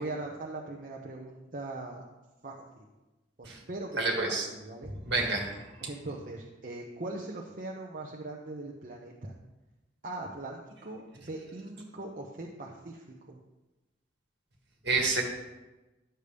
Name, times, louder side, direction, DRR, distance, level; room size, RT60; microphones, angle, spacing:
voice 1, 0.0-2.0 2.4-2.8 3.4-4.9 5.8-9.3 10.0-13.4, right 2 dB, 45° right, -2 dB, 0.8 m, -40 dB
voice 2, 4.0-4.5 4.8-5.9 14.8-15.2, right 3 dB, 60° right, 0 dB, 1.9 m, -29 dB
11.0 x 6.8 x 3.4 m, 1.1 s
head